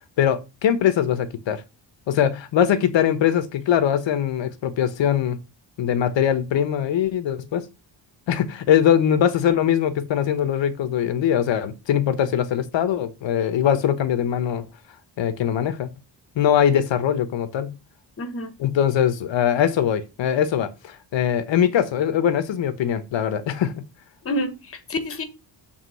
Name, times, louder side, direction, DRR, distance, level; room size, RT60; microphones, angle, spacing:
voice 1, 0.2-1.6 2.1-5.4 5.8-7.6 8.3-14.7 15.2-15.9 16.3-17.8 18.6-23.8, left 9 dB, 85° left, 1.1 m, -21 dB
voice 2, 18.2-18.5 24.2-25.2, left 1 dB, 30° left, 1.1 m, -28 dB
7.4 x 3.6 x 6.2 m
wide cardioid pair, 165°, 43 cm